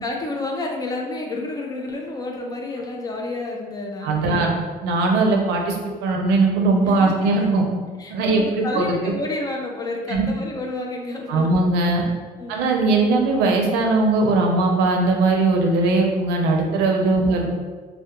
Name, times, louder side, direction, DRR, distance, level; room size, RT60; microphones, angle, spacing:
voice 1, 0.0-4.6 6.8-7.3 8.0-11.6 12.4-13.0 17.0-17.3, left 2 dB, 20° left, 0 dB, 0.4 m, -30 dB
voice 2, 4.0-4.5 4.8-7.6 8.1-9.0 10.1-10.3 11.3-12.0 12.5-17.5, right 3 dB, 90° right, 1 dB, 0.5 m, -19 dB
2.2 x 2.1 x 2.8 m, 1.4 s
cardioid pair, 110°, 17 cm